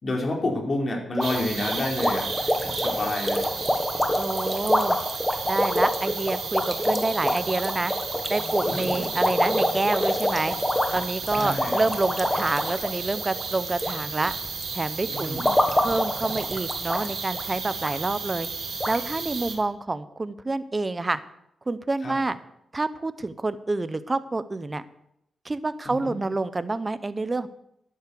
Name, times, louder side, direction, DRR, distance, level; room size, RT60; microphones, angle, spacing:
voice 1, 0.0-3.4 8.6-9.2 11.4-11.7 15.1-15.5 22.0-22.1 25.9-26.2, left 2 dB, 45° left, 1 dB, 4.0 m, -29 dB
sound 1, 1.2-13.9 14.2-14.6 15.1-17.1 17.3-17.4 17.8-17.9 18.4-18.5 18.8-19.0, left 1 dB, 10° left, 1.7 m, -26 dB
sound 2, 1.2-19.5, right 5 dB, 85° right, 4.1 m, -34 dB
voice 2, 4.2-5.0 5.5-7.9 8.3-10.5 10.9-14.3 14.7-15.4 15.8-18.5 18.9-21.2 21.7-22.4 22.7-24.8 25.4-27.5, right 2 dB, 25° right, 14 dB, 0.9 m, -28 dB
11.5 x 9.7 x 7.0 m, 0.78 s
cardioid pair, 85°, 0 cm